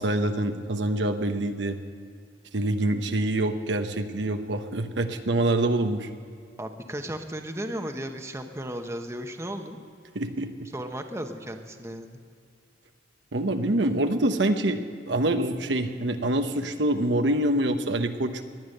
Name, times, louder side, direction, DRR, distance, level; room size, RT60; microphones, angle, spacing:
voice 1, 0.0-1.8 2.5-6.1 10.1-10.5 13.3-18.4, right 1 dB, 75° right, 7 dB, 1.0 m, -25 dB
voice 2, 6.6-9.8 10.7-12.2, right 1 dB, 15° right, 5 dB, 1.0 m, -35 dB
19.5 x 11.0 x 6.6 m, 2.3 s
head